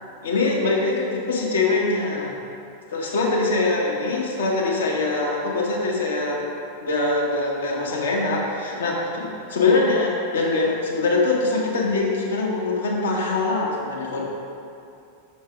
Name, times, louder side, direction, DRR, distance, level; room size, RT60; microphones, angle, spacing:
voice 1, 0.2-2.3 2.9-6.4 6.8-14.2, left 3 dB, 65° left, -2 dB, 1.0 m, -23 dB
5.9 x 4.6 x 4.8 m, 2.7 s
figure-of-eight pair, 90°, 0 cm